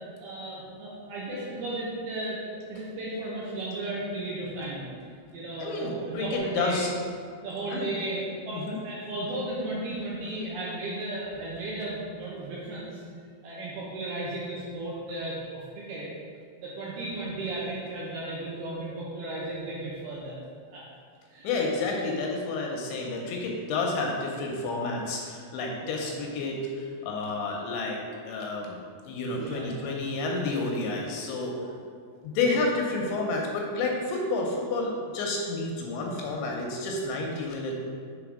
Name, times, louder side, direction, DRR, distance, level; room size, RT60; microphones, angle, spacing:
voice 1, 0.2-2.4 2.7-4.9 5.3-6.8 7.4-13.0 13.4-16.1 16.6-20.4 20.7-20.8 21.3-21.5 25.8-26.1 29.4-29.7, right 2 dB, 75° right, -7 dB, 2.3 m, -34 dB
voice 2, 5.6-6.9 7.7-7.9 8.5-8.8 21.4-28.8 29.0-31.6 32.2-37.7, left 3 dB, 80° left, 0 dB, 2.8 m, -30 dB
7.1 x 3.6 x 4.8 m, 2.1 s
omnidirectional pair, 5.5 m